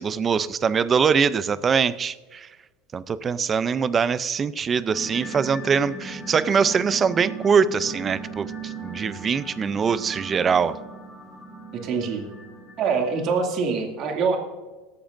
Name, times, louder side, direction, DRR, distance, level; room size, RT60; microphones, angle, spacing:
voice 1, 0.0-2.5 2.9-10.8, right 6 dB, 20° right, 16 dB, 0.4 m, -23 dB
sound 1, 4.9-13.3, right 4 dB, 5° left, 4.4 m, -38 dB
voice 2, 11.7-12.2 12.8-14.4, right 5 dB, 35° right, 2 dB, 2.3 m, -24 dB
17.5 x 14.0 x 2.6 m, 1.2 s
supercardioid pair, 170°, 0 cm